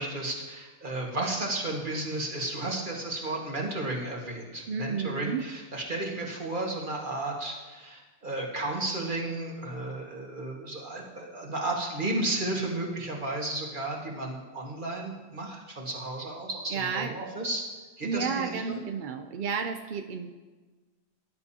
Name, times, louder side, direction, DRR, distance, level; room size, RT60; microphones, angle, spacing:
voice 1, 0.0-17.6 18.0-18.8, right 2 dB, 35° right, -1 dB, 1.9 m, -33 dB
voice 2, 4.7-5.4 16.7-17.2 18.0-20.3, right 6 dB, 55° right, 6 dB, 0.5 m, -32 dB
19.0 x 10.5 x 2.8 m, 1.3 s
omnidirectional pair, 1.5 m